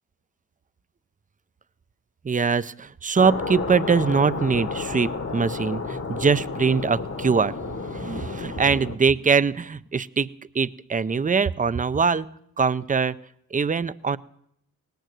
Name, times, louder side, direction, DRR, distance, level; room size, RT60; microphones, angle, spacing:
voice 1, 2.2-10.3 10.5-12.3 12.6-13.2 13.5-14.2, right 5 dB, 20° right, 15 dB, 0.5 m, -23 dB
sound 1, 3.2-9.0, left 4 dB, 45° left, 1.4 m, -31 dB
18.5 x 9.3 x 7.7 m, 0.73 s
cardioid pair, 60°, 36 cm